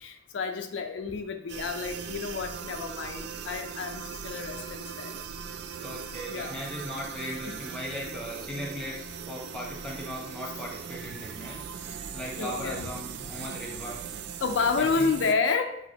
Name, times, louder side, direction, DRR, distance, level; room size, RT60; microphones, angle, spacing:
voice 1, 0.0-5.1 6.3-6.6 7.5-7.6 12.4-12.9 14.4-15.8, left 4 dB, 70° left, 6 dB, 0.4 m, -30 dB
sound 1, 1.5-15.3, right 7 dB, 60° right, 0.3 m, -39 dB
voice 2, 5.8-11.7 12.1-14.0 14.7-15.1, equal, 5° left, -2 dB, 0.9 m, -38 dB
5.9 x 2.8 x 2.8 m, 0.84 s
head